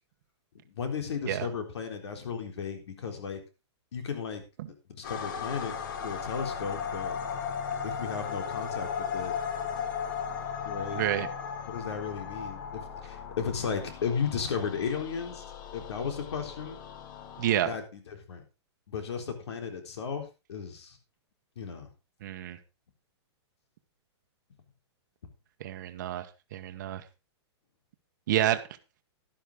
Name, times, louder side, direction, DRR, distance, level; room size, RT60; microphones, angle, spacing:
voice 1, 0.7-3.4 3.9-4.4 4.9-5.8 6.0-7.2 7.8-9.4 10.6-11.0 11.6-15.4 15.7-16.8 17.6-18.4 18.9-21.0 21.6-21.9, left 6 dB, 70° left, 3.8 m, -35 dB
sound 1, 5.0-17.6, left 7 dB, 45° left, 1.6 m, -36 dB
voice 2, 10.9-11.3 17.4-17.7 22.2-22.6 25.6-26.3 26.5-27.0 28.3-28.6, right 12 dB, 40° right, 1.3 m, -28 dB
12.0 x 11.5 x 3.7 m
hypercardioid pair, 175°, 15 cm